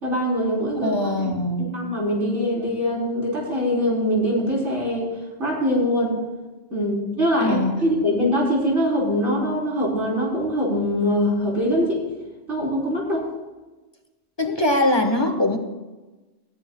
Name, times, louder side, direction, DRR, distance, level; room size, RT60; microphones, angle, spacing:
voice 1, 0.0-1.3 1.6-5.1 5.4-6.2 6.7-12.0 12.5-13.3, equal, 90° right, -2 dB, 4.2 m, -23 dB
voice 2, 0.8-1.7 7.4-7.7 14.4-15.6, left 1 dB, 25° left, 6 dB, 1.2 m, -22 dB
18.5 x 14.5 x 2.3 m, 1.2 s
omnidirectional pair, 1.2 m